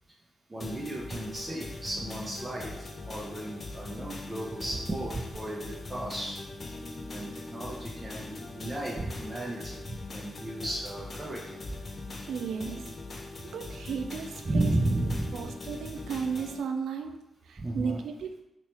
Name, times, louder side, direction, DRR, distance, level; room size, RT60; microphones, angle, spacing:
voice 1, 0.5-6.4 7.1-11.6 14.4-15.4 17.6-18.0, right 1 dB, 35° right, -4 dB, 0.7 m, -34 dB
sound 1, 0.6-16.6, left 2 dB, 45° left, 0.5 m, -41 dB
voice 2, 12.3-13.0 13.5-14.7 15.3-18.4, right 6 dB, 70° right, 5 dB, 0.3 m, -35 dB
3.1 x 3.0 x 3.0 m, 0.87 s
hypercardioid pair, 40°, 0 cm